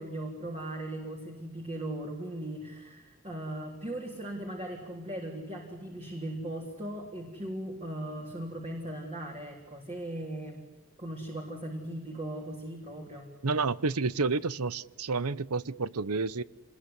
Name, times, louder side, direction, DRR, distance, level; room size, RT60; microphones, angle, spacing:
voice 1, 0.0-10.6 11.0-13.3, right 1 dB, 30° right, 3.7 m, -38 dB
voice 2, 13.4-16.4, right 4 dB, 85° right, 0.9 m, -30 dB
26.5 x 21.0 x 9.8 m
head